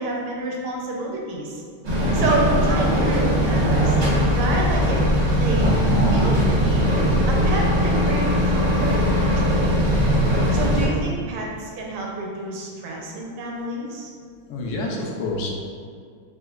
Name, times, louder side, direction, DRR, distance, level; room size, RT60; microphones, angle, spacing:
voice 1, 0.0-1.6 2.1-4.0 4.3-5.0 5.4-5.7 6.1-6.9 7.3-9.8 10.5-14.1, right 2 dB, 85° right, -1 dB, 1.5 m, -28 dB
sound 1, 1.8-10.9, equal, 55° right, 0.7 m, -20 dB
voice 2, 2.0-2.3 14.5-15.5, left 2 dB, 75° left, -1 dB, 1.4 m, -28 dB
5.3 x 2.0 x 2.3 m, 2.2 s
omnidirectional pair, 2.3 m